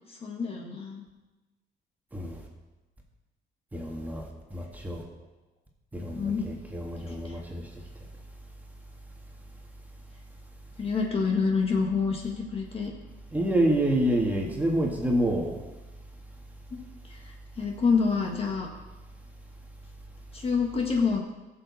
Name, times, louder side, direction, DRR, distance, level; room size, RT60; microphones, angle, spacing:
voice 1, 0.1-1.1 6.1-6.5 7.1-7.4 10.8-12.9 16.7-16.8 17.1-17.2 17.6-18.7 20.3-21.2, left 5 dB, 35° left, 0 dB, 1.7 m, -27 dB
voice 2, 3.7-4.2 4.5-5.0 5.9-7.6 13.3-15.6, right 1 dB, 10° right, -1 dB, 2.0 m, -27 dB
15.0 x 7.0 x 4.2 m, 1.1 s
cardioid pair, 110°, 17 cm